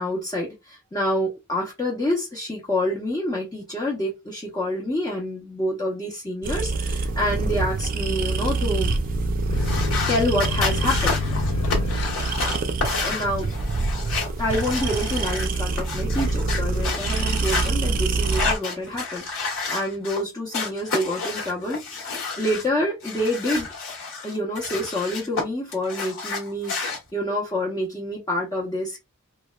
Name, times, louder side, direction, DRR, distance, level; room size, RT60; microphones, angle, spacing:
voice 1, 0.0-8.9 10.1-11.2 13.0-13.5 14.4-22.1 22.4-29.0, left 1 dB, 15° left, 0.6 m, -27 dB
sound 1, 6.4-18.5, right 3 dB, 40° right, 0.4 m, -26 dB
sound 2, 9.5-16.8 17.2-17.9, left 4 dB, 80° left, 0.4 m, -30 dB
sound 3, 9.6-17.7 18.2-20.2 20.5-22.7 23.0-25.4 25.7-27.0, left 4 dB, 65° left, 1.1 m, -30 dB
2.8 x 2.1 x 2.2 m
head